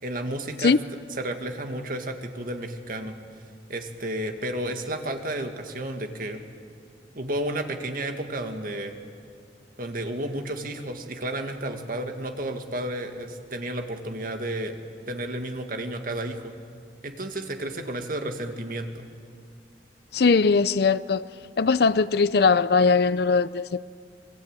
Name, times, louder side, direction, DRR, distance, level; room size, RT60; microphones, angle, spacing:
voice 1, 0.0-0.7 1.2-3.2 3.7-6.4 7.1-8.9 9.8-14.8 15.1-16.5 17.0-19.1, right 1 dB, 50° right, 2.2 m, -32 dB
voice 2, 20.1-21.3 21.6-23.9, left 4 dB, 60° left, 0.5 m, -20 dB
25.0 x 22.0 x 9.1 m
head